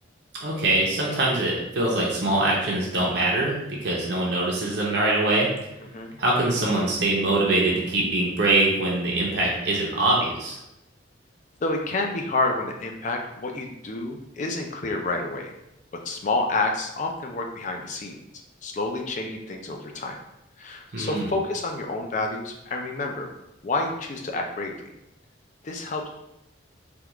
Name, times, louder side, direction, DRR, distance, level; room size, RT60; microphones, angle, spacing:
voice 1, 0.4-5.5 6.2-10.6 20.9-21.3, right 2 dB, 55° right, -4 dB, 0.6 m, -23 dB
voice 2, 5.8-6.2 11.6-15.5 16.0-18.2 18.6-20.2 20.6-23.3 23.6-24.9 25.6-26.1, left 2 dB, 40° left, 3 dB, 0.4 m, -29 dB
3.5 x 2.3 x 2.9 m, 0.86 s
head